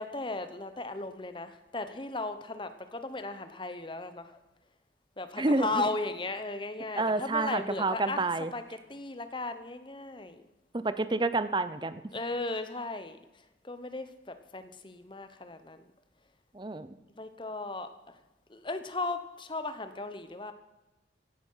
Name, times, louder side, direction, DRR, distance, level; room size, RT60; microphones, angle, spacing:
voice 1, 0.0-4.4 5.2-8.3 8.5-10.4 12.1-13.2 13.6-15.8 17.2-17.9 18.5-20.5, left 2 dB, 25° left, 10 dB, 1.0 m, -36 dB
voice 2, 5.4-5.9 7.0-8.5 10.7-12.0 16.5-16.9, right 2 dB, 25° right, 13 dB, 0.7 m, -29 dB
16.5 x 11.5 x 5.7 m, 1.1 s
head